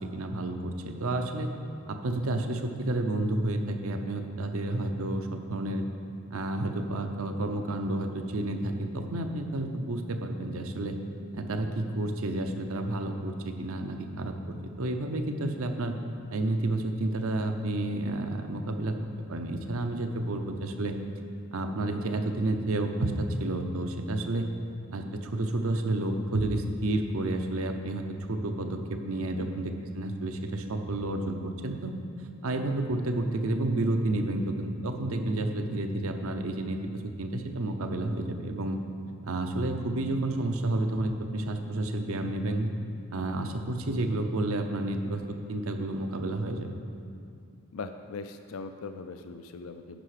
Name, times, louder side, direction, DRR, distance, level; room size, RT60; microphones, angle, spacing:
voice 1, 0.0-1.5 1.9-5.9 6.3-11.0 11.3-16.0 16.3-19.0 19.3-20.9 21.5-24.5 24.9-32.0 32.4-38.8 39.2-42.7 43.1-46.7, right 2 dB, 70° right, 6 dB, 0.7 m, -30 dB
voice 2, 29.4-29.7 47.7-50.0, left 4 dB, 70° left, 8 dB, 0.4 m, -40 dB
10.0 x 5.6 x 4.9 m, 2.5 s
head